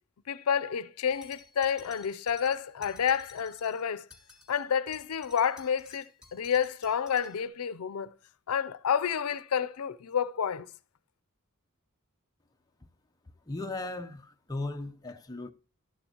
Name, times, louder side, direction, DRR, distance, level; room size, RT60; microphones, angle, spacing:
voice 1, 0.3-4.1 4.5-8.1 8.5-10.7, left 7 dB, 80° left, 0.5 m, -29 dB
sound 1, 1.1-3.8 4.1-4.6 4.9-7.4, left 3 dB, 5° right, 2.3 m, -54 dB
voice 2, 13.5-15.5, left 2 dB, 15° left, 0.7 m, -37 dB
13.0 x 11.5 x 2.9 m
head